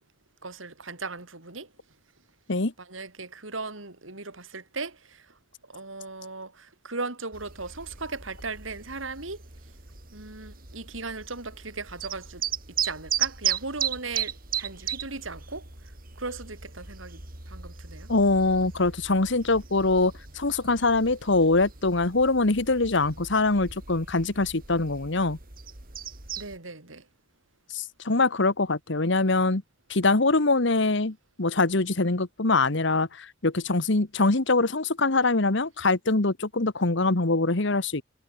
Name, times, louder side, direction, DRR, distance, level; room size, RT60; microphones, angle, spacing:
voice 1, 0.4-1.7 2.8-5.3 5.7-9.4 10.1-12.4 12.8-15.7 16.2-17.2 17.5-18.1 26.4-27.0, right 3 dB, 80° right, 4.7 m, -37 dB
sound 1, 7.3-26.6, right 9 dB, 45° right, 3.5 m, -36 dB
voice 2, 18.1-25.4 27.7-29.6 29.9-38.0, left 3 dB, 65° left, 1.5 m, -23 dB
head